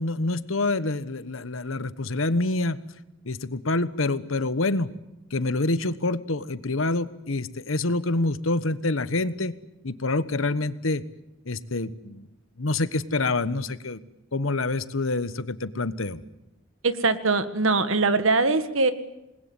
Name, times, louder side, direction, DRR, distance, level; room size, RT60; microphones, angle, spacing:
voice 1, 0.0-2.8 3.2-4.9 5.3-9.6 9.8-11.0 11.4-12.3 12.6-14.0 14.3-16.2, left 2 dB, 85° left, 14 dB, 1.2 m, -26 dB
voice 2, 16.8-18.9, right 3 dB, 85° right, 11 dB, 1.8 m, -22 dB
27.0 x 20.5 x 9.7 m, 0.94 s
head